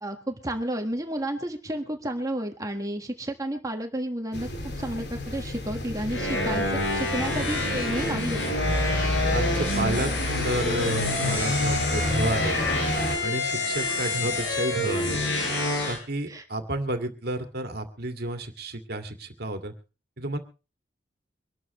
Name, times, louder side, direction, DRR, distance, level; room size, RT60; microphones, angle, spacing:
voice 1, 0.0-8.4 16.3-16.4, right 1 dB, 20° right, 4 dB, 1.5 m, -31 dB
sound 1, 4.3-13.2, left 2 dB, 65° left, 2.7 m, -30 dB
sound 2, 6.1-16.0, left 2 dB, 85° left, 6.3 m, -28 dB
voice 2, 9.3-10.1 10.4-12.6 13.2-15.2 15.9-19.7 20.2-20.4, right 1 dB, 60° right, 5 dB, 2.1 m, -30 dB
24.0 x 12.5 x 3.1 m, 0.33 s
head